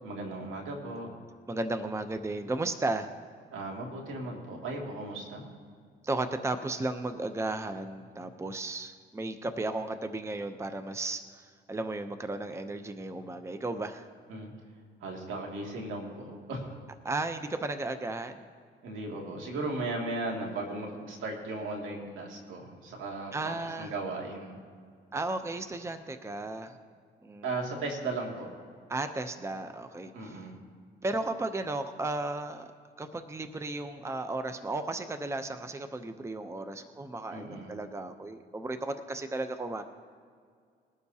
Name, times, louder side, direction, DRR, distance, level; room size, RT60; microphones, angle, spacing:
voice 1, 0.0-1.1 3.5-5.4 14.3-14.5 15.0-16.8 18.8-24.6 27.4-28.5 30.1-30.5 37.3-37.7, right 2 dB, 80° right, 0 dB, 2.4 m, -36 dB
voice 2, 1.5-3.1 6.0-14.1 17.0-18.4 23.3-23.9 25.1-26.7 27.2-27.5 28.9-30.4 31.0-32.6 33.0-39.8, right 2 dB, 15° right, 8 dB, 0.7 m, -34 dB
20.5 x 11.5 x 2.8 m, 2.1 s
cardioid pair, 90°, 20 cm